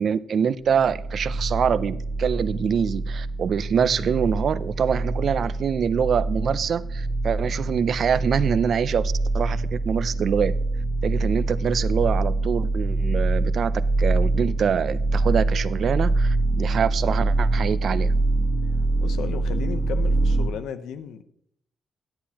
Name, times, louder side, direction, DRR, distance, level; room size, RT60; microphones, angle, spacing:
voice 1, 0.0-10.5 11.0-13.7 14.0-18.1, right 7 dB, 55° right, 0.4 m, -25 dB
sound 1, 0.6-20.5, right 2 dB, 40° right, 1.4 m, -25 dB
voice 2, 19.0-21.2, left 8 dB, 90° left, 0.7 m, -34 dB
10.5 x 9.5 x 2.9 m
cardioid pair, 110°, 0 cm